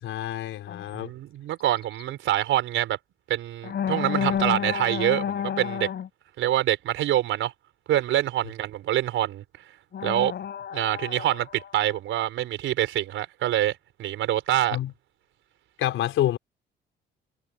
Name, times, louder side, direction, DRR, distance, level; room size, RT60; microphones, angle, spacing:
voice 1, 0.0-1.1 14.7-14.9 15.8-16.4, left 13 dB, 85° left, 4.0 m, -27 dB
sound 1, 0.7-0.8 1.8-2.0 3.6-6.1 9.9-12.0, left 8 dB, 60° left, 4.2 m, -30 dB
voice 2, 0.9-3.0 3.3-5.9 6.4-7.5 7.9-9.4 10.0-10.3 10.7-14.8, right 13 dB, 85° right, 4.8 m, -25 dB
cardioid pair, 90°, 20 cm